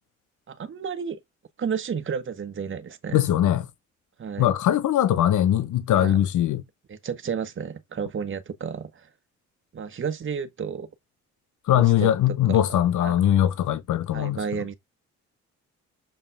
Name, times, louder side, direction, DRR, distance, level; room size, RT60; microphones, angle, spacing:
voice 1, 0.5-1.2 1.6-3.2 4.2-4.5 5.9-6.2 6.9-9.1 9.7-10.9 11.7-12.1 12.5-13.2 14.1-14.8, right 6 dB, 40° right, 1.5 m, -32 dB
voice 2, 3.1-3.7 4.4-6.6 11.7-14.4, left 11 dB, 80° left, 1.2 m, -21 dB
7.8 x 5.4 x 3.6 m
cardioid pair, 90°, 30 cm